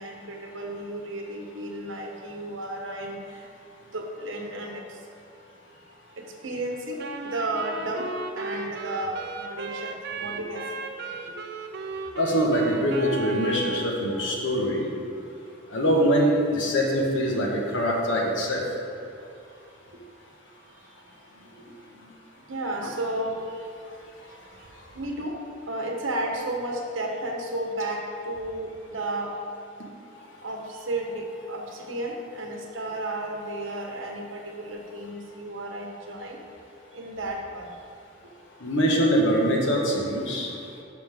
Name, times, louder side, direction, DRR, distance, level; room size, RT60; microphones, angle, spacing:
voice 1, 0.0-3.5 3.9-5.0 6.2-10.6 11.2-11.4 14.7-14.8 18.9-19.0 19.9-20.0 21.3-22.2 22.5-23.6 24.9-29.3 30.4-36.4 36.9-37.7, right 1 dB, 75° right, 1 dB, 1.2 m, -33 dB
Wind instrument woodwind instrument, 7.0-13.9, right 3 dB, 55° right, 0.5 m, -36 dB
voice 2, 12.2-14.9 15.7-18.6 38.6-40.5, equal, 70° left, -1 dB, 1.4 m, -23 dB
11.0 x 5.8 x 3.6 m, 2.4 s
head